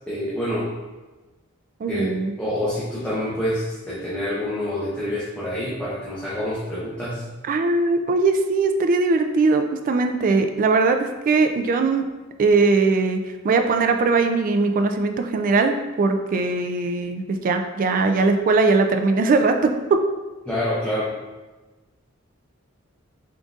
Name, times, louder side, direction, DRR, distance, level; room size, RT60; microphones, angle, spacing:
voice 1, 0.1-0.7 1.9-7.2 20.5-21.1, left 1 dB, 5° left, -10 dB, 0.7 m, -27 dB
voice 2, 1.8-2.3 7.5-12.1 12.4-20.0, right 3 dB, 40° right, 6 dB, 0.3 m, -20 dB
3.8 x 3.7 x 2.4 m, 1.2 s
head